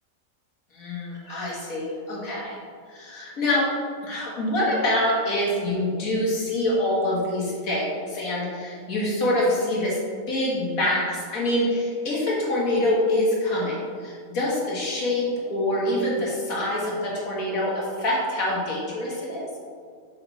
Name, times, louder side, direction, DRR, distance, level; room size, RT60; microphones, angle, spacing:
voice 1, 0.7-2.6 2.9-3.6 4.0-10.0 10.3-13.8 14.0-19.5, left 1 dB, 75° left, -5 dB, 2.0 m, -25 dB
6.5 x 4.3 x 4.1 m, 2.1 s
omnidirectional pair, 1.5 m